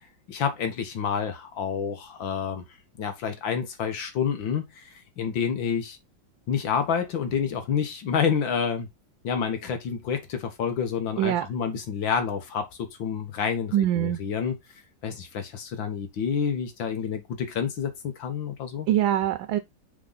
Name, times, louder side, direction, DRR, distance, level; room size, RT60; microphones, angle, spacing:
voice 1, 0.3-2.6 3.0-4.9 5.2-6.0 6.5-8.9 9.2-12.7 13.0-14.6 15.0-18.9, left 7 dB, 80° left, 2.1 m, -28 dB
voice 2, 13.7-14.2 18.9-19.6, right 12 dB, 80° right, 1.4 m, -23 dB
6.8 x 3.8 x 4.0 m
omnidirectional pair, 2.1 m